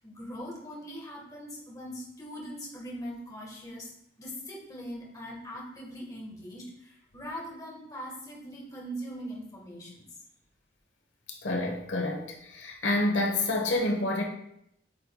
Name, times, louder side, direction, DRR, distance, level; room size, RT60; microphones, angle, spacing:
voice 1, 0.0-3.9 4.2-10.0, equal, 20° left, -3 dB, 1.4 m, -41 dB
voice 2, 11.4-14.2, left 2 dB, 90° left, 1 dB, 1.1 m, -28 dB
8.6 x 4.8 x 2.3 m, 0.76 s
head